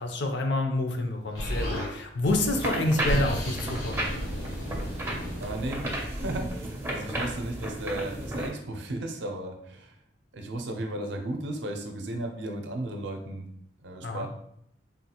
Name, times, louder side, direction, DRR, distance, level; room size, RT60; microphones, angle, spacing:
voice 1, 0.0-4.0 14.0-14.3, left 2 dB, 65° left, 4 dB, 0.5 m, -28 dB
Explosion, 1.3-1.9 2.7-6.6, equal, 85° left, 0.8 m, -34 dB
sound 1, 2.3-8.5, right 1 dB, 15° right, 0.4 m, -33 dB
voice 2, 5.4-10.0 10.3-13.5 13.8-14.3, right 1 dB, 65° right, 3 dB, 0.5 m, -35 dB
3.6 x 2.3 x 2.8 m, 0.73 s
head